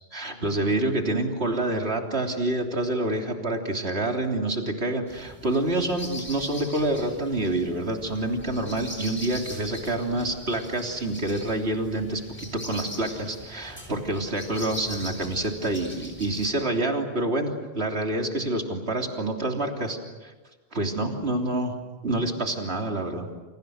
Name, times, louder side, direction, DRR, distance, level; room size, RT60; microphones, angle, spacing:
voice 1, 0.1-20.3 20.7-21.7 22.0-23.3, right 2 dB, 80° right, 2 dB, 3.6 m, -27 dB
sound 1, 5.1-16.5, equal, 10° left, 6.3 m, -41 dB
29.5 x 28.0 x 6.5 m, 1.3 s
omnidirectional pair, 1.1 m